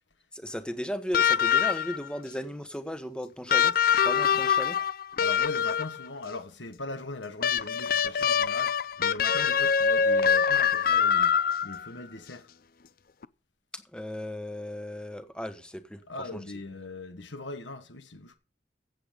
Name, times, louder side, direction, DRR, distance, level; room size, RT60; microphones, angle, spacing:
voice 1, 0.3-3.7 4.0-4.8 13.7-16.0 16.3-16.4, equal, 5° left, 1.2 m, -36 dB
sound 1, 1.1-2.1 3.5-6.1 7.4-11.9 13.2-13.3, left 7 dB, 50° left, 0.5 m, -24 dB
voice 2, 5.2-12.5 16.1-18.4, left 2 dB, 85° left, 1.5 m, -40 dB
15.5 x 8.0 x 5.2 m
head